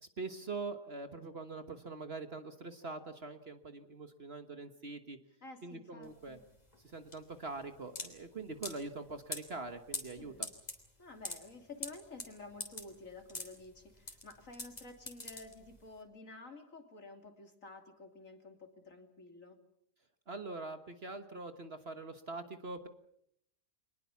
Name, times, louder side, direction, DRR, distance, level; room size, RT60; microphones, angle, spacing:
voice 1, 0.0-5.2 5.6-6.4 6.8-10.3 20.3-22.9, right 3 dB, 40° right, 8 dB, 1.4 m, -43 dB
voice 2, 5.4-6.4 10.0-10.5 11.0-19.6, left 3 dB, 55° left, 5 dB, 3.2 m, -51 dB
sound 1, 6.0-16.0, left 1 dB, 25° left, 3.3 m, -45 dB
25.0 x 20.0 x 7.1 m, 0.73 s
omnidirectional pair, 1.7 m